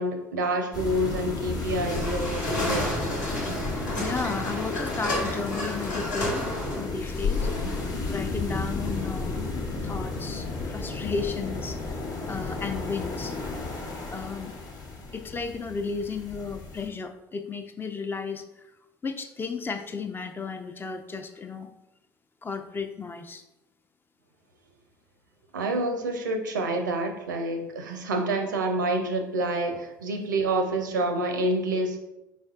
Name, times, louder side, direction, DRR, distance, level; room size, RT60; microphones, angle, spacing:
voice 1, 0.0-2.9 7.4-7.8 25.5-32.0, right 1 dB, 80° right, 4 dB, 0.5 m, -28 dB
sound 1, 0.7-16.9, left 3 dB, 40° left, 0.9 m, -33 dB
sound 2, 1.5-12.0, left 1 dB, 80° left, 1.3 m, -32 dB
voice 2, 4.0-12.0 12.3-13.4 14.1-14.5 15.1-18.7 19.0-21.7 22.4-23.4, left 5 dB, 20° left, 7 dB, 0.4 m, -34 dB
4.6 x 4.2 x 2.4 m, 0.93 s
figure-of-eight pair, 65°, 10 cm